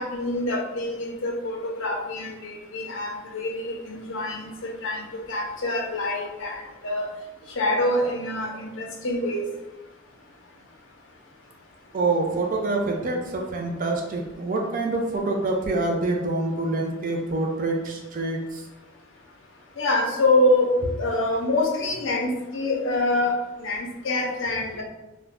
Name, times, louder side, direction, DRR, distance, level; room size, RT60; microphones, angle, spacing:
voice 1, 0.0-7.1 7.6-9.5 19.8-24.8, left 2 dB, 75° left, 1 dB, 0.6 m, -26 dB
voice 2, 11.9-18.6, right 2 dB, 45° right, 1 dB, 0.4 m, -26 dB
2.5 x 2.1 x 3.3 m, 1.0 s
head